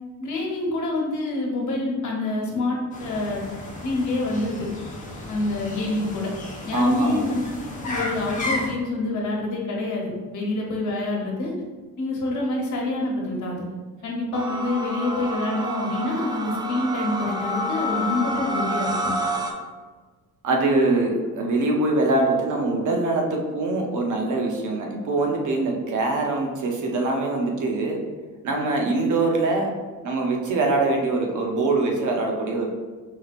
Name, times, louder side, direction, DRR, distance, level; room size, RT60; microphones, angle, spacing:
voice 1, 0.2-3.4 3.8-4.7 5.3-6.3 6.6-7.4 7.8-11.5 12.0-13.7 14.0-19.1, left 2 dB, 65° left, -1 dB, 1.0 m, -27 dB
sound 1, 2.9-8.7, left 1 dB, 25° left, 0.8 m, -34 dB
voice 2, 6.7-7.2 20.4-28.0 28.4-29.7 30.0-32.7, right 2 dB, 65° right, 1 dB, 0.8 m, -23 dB
sound 2, 14.3-19.5, right 1 dB, 15° right, 0.3 m, -28 dB
4.9 x 2.8 x 2.5 m, 1.4 s
cardioid pair, 125°, 32 cm